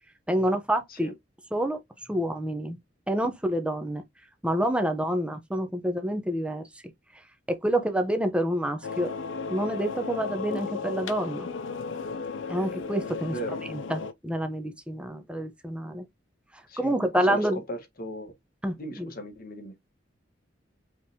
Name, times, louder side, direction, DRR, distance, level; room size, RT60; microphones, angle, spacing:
voice 1, 0.3-1.1 1.5-1.8 2.1-2.8 3.1-4.0 4.4-6.6 7.5-9.1 9.5-11.5 12.5-13.3 13.7-16.0 16.8-17.6 18.6-19.1, right 1 dB, 5° right, 0.8 m, -28 dB
sound 1, 8.8-14.1, left 5 dB, 85° left, 0.6 m, -35 dB
voice 2, 13.2-13.6 16.7-18.3 18.8-19.8, equal, 50° left, 1.4 m, -37 dB
5.5 x 3.2 x 2.9 m
head